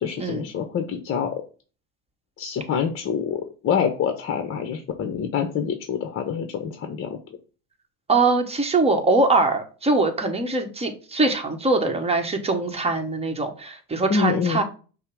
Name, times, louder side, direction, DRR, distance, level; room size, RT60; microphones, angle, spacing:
voice 1, 0.0-1.3 2.4-7.2 14.1-14.6, left 7 dB, 40° left, 6 dB, 0.7 m, -26 dB
voice 2, 8.1-14.6, right 3 dB, 20° right, 6 dB, 1.0 m, -22 dB
5.5 x 2.0 x 4.7 m, 0.37 s
supercardioid pair, 95°, 33 cm